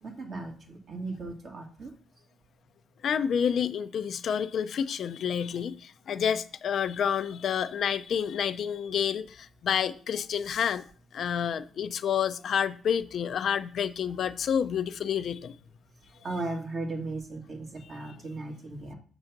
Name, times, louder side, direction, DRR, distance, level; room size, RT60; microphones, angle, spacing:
voice 1, 0.0-1.9 16.2-19.0, right 2 dB, 50° right, 2.0 m, -36 dB
voice 2, 3.0-10.8 11.1-15.5 18.1-18.2, left 8 dB, 60° left, 0.5 m, -29 dB
6.9 x 3.8 x 5.9 m
cardioid pair, 80°, 0 cm